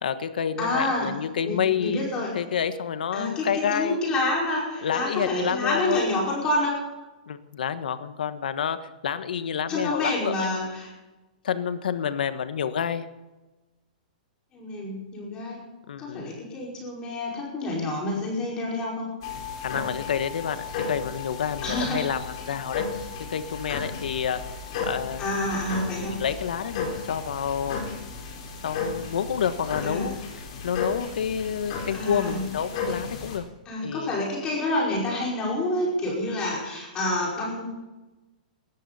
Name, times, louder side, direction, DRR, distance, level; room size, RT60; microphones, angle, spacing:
voice 1, 0.0-4.0 4.8-6.0 7.3-8.8 9.0-10.5 11.4-13.1 15.9-16.3 19.6-22.8 23.3-24.4 24.8-25.4 26.2-27.9 28.6-33.5 33.8-34.1, left 8 dB, 75° left, 11 dB, 1.3 m, -29 dB
voice 2, 0.6-1.1 1.4-2.3 3.1-6.8 9.7-10.9 14.5-15.6 16.0-19.1 21.6-22.0 25.2-26.2 29.8-30.1 31.9-32.4 33.7-37.6, left 1 dB, 15° left, -3 dB, 5.2 m, -28 dB
sound 1, 19.2-33.4, left 4 dB, 40° left, 4.2 m, -34 dB
18.5 x 14.0 x 4.2 m, 1.1 s
hypercardioid pair, 175°, 5 cm